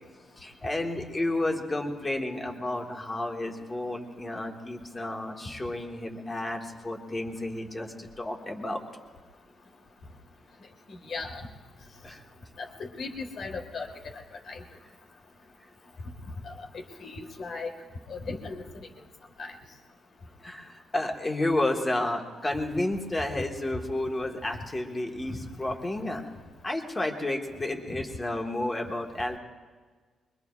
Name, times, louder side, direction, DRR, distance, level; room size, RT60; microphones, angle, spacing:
voice 1, 0.4-8.8 12.0-12.2 20.4-26.2 26.6-29.4, left 1 dB, 15° left, 1 dB, 1.4 m, -31 dB
voice 2, 10.9-11.5 12.6-13.9 14.5-14.6 16.4-17.7 18.1-18.9 19.4-19.5 25.3-25.4 27.9-28.0, left 3 dB, 45° left, 3 dB, 1.6 m, -37 dB
23.5 x 23.0 x 2.4 m, 1.5 s
wide cardioid pair, 180°, 0 cm